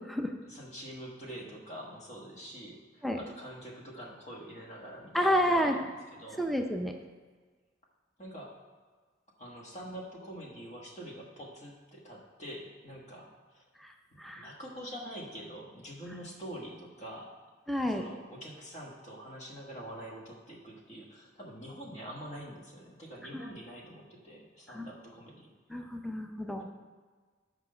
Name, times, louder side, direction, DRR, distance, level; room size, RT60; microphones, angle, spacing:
voice 1, 0.5-5.8 6.1-6.4 8.2-8.6 9.4-13.6 14.1-17.3 17.9-25.5 26.6-26.7, equal, 40° left, -2 dB, 1.3 m, -45 dB
voice 2, 5.1-5.7 6.4-6.9 13.8-13.9 14.2-14.5 17.7-18.0 23.3-23.4 24.7-24.9 25.7-26.6, equal, ahead, 4 dB, 0.4 m, -30 dB
6.0 x 5.0 x 6.5 m, 1.5 s
head